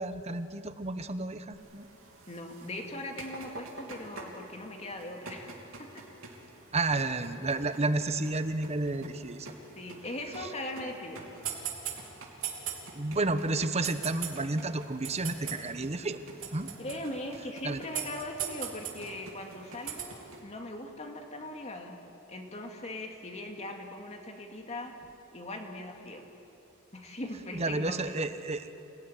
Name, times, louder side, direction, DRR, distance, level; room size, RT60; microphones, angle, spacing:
voice 1, 0.0-1.8 6.7-9.5 10.4-10.5 12.9-16.2 16.5-16.7 17.6-17.8 27.5-28.7, right 2 dB, 30° right, 11 dB, 1.0 m, -31 dB
sound 1, 1.5-20.4, right 7 dB, 75° right, 3.7 m, -43 dB
voice 2, 2.3-6.0 9.8-11.3 13.5-13.7 16.8-22.0 22.3-24.9 25.3-26.2 26.9-28.1, left 1 dB, 30° left, 2 dB, 2.4 m, -40 dB
27.5 x 18.0 x 9.9 m, 2.8 s
head